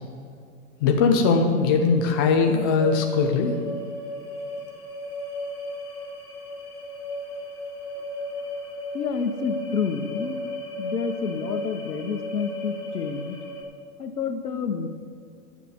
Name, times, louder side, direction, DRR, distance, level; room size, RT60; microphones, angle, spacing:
voice 1, 0.8-3.5, left 5 dB, 15° left, 3 dB, 0.3 m, -20 dB
sound 1, 2.4-13.6, left 1 dB, 65° left, 2.1 m, -35 dB
voice 2, 8.9-10.4 10.8-13.4 14.0-14.9, left 5 dB, 85° left, 8 dB, 1.1 m, -29 dB
7.4 x 6.7 x 8.0 m, 2.2 s
hypercardioid pair, 125°, 46 cm